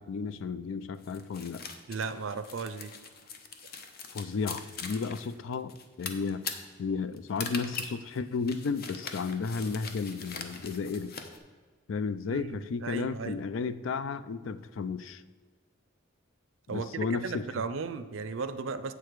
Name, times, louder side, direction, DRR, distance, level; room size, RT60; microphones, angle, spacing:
voice 1, 0.0-1.7 4.1-6.4 6.8-11.1 11.9-15.2 16.7-17.6, left 5 dB, 75° left, 14 dB, 0.4 m, -33 dB
sound 1, 1.0-11.4, left 5 dB, 50° left, 0.8 m, -41 dB
voice 2, 1.9-2.9 12.3-13.4 16.7-18.9, right 5 dB, 80° right, 11 dB, 0.5 m, -36 dB
8.2 x 6.7 x 4.6 m, 1.5 s
head